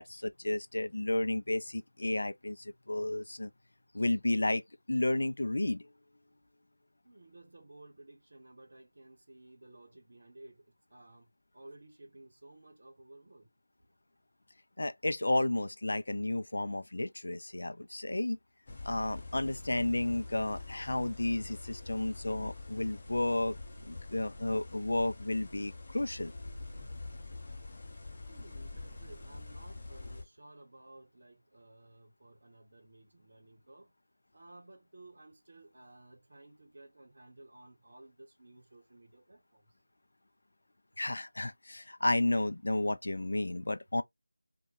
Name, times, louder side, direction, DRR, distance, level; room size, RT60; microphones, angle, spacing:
voice 1, 0.0-3.5 3.9-4.6 4.9-5.9 14.8-18.4 18.9-23.6 23.8-26.3 41.0-44.0, left 2 dB, 65° left, 0.3 m, -32 dB
voice 2, 7.0-13.5 28.3-33.9 34.3-39.7, right 2 dB, 55° right, 0.9 m, -55 dB
sound 1, 18.7-30.2, left 2 dB, 30° left, 0.7 m, -45 dB
2.2 x 2.1 x 2.9 m
figure-of-eight pair, 170°, 0 cm